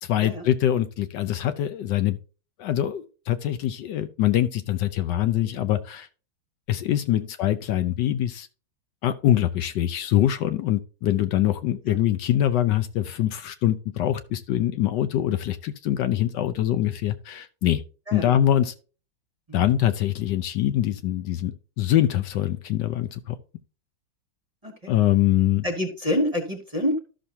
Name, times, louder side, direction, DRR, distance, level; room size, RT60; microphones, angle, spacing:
voice 1, 0.0-2.2 2.6-6.1 6.7-8.5 9.0-17.8 18.1-18.7 19.5-23.4 24.9-25.6, left 12 dB, 70° left, 1.2 m, -24 dB
voice 2, 24.6-24.9 25.6-27.0, left 1 dB, 25° right, 1.0 m, -27 dB
12.5 x 6.3 x 2.8 m
omnidirectional pair, 2.1 m